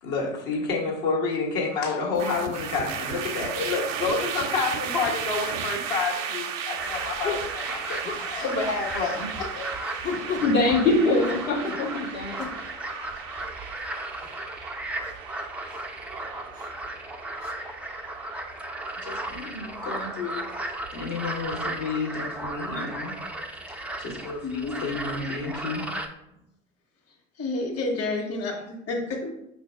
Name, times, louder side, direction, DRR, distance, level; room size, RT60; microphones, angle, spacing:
voice 1, 0.0-9.7 19.0-20.4 20.9-23.1 24.0-25.8, left 4 dB, 60° left, -2 dB, 1.5 m, -30 dB
sound 1, 2.1-21.4, right 8 dB, 75° right, 0.6 m, -36 dB
sound 2, 6.1-6.3 7.2-7.5 8.0-8.6 10.0-10.6 11.2-11.9 12.4-12.6 14.2-14.3 15.0-15.2 15.7-15.8 16.5-16.7 17.4-17.5, left 5 dB, 20° left, 0.7 m, -34 dB
sound 3, 6.8-26.1, right 1 dB, 5° right, 0.4 m, -35 dB
voice 2, 10.0-12.4, left 2 dB, 90° left, -3 dB, 0.8 m, -23 dB
voice 3, 24.4-24.8 27.4-29.3, left 2 dB, 40° left, 0 dB, 1.4 m, -30 dB
5.3 x 2.7 x 3.4 m, 0.81 s
figure-of-eight pair, 70°, 39 cm